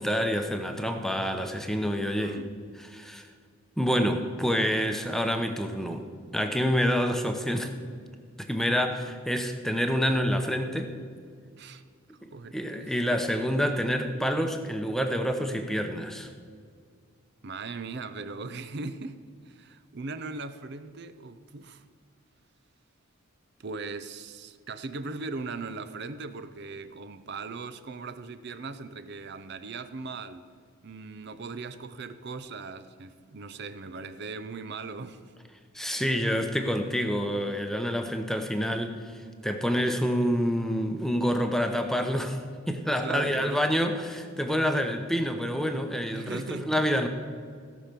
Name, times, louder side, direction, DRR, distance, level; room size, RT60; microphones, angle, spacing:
voice 1, 0.0-2.4 2.9-3.3 3.8-6.1 6.3-7.7 8.4-10.9 12.2-16.3 35.7-42.4 42.7-47.1, equal, ahead, 5 dB, 0.8 m, -27 dB
voice 2, 2.2-2.5 11.6-11.8 12.3-13.0 17.4-21.8 23.6-30.4 30.8-35.2 43.0-43.7 46.1-46.9, right 3 dB, 50° right, 11 dB, 0.6 m, -39 dB
17.0 x 5.7 x 6.8 m, 2.1 s
head